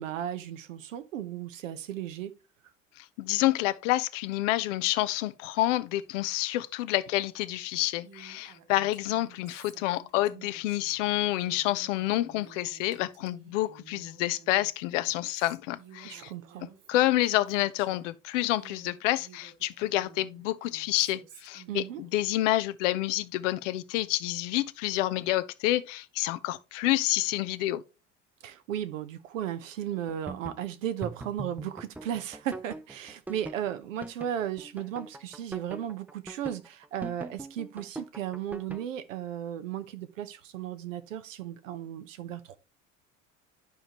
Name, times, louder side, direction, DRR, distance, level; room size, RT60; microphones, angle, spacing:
voice 1, 0.0-2.3 16.0-16.7 21.7-22.0 28.4-42.6, right 10 dB, 80° right, 0.9 m, -35 dB
voice 2, 3.0-16.3 16.9-27.8, left 16 dB, 70° left, 0.7 m, -28 dB
Female speech woman speaking, 8.0-18.1 18.5-22.4, right 7 dB, 60° right, 2.6 m, -54 dB
sound 1, 29.9-38.8, right 2 dB, 5° right, 0.6 m, -42 dB
12.0 x 5.0 x 3.0 m
hypercardioid pair, 70°, 38 cm